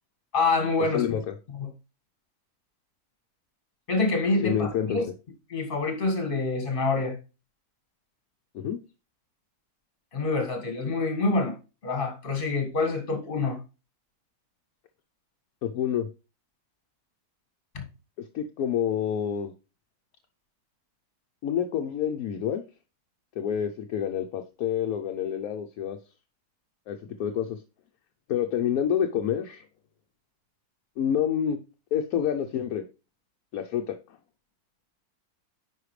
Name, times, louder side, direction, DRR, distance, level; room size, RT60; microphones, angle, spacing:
voice 1, 0.3-1.0 3.9-5.0 5.5-7.2 10.1-11.6 11.8-13.6 17.7-17.8, left 3 dB, 35° left, 1.8 m, -26 dB
voice 2, 0.9-1.3 4.4-5.0 8.5-8.8 15.6-16.1 18.3-19.5 21.4-22.6 23.4-26.0 26.9-27.6 28.3-29.6 31.0-31.6 31.9-32.8 33.5-34.2, left 9 dB, 70° left, 1.1 m, -28 dB
9.8 x 5.0 x 3.2 m
omnidirectional pair, 1.7 m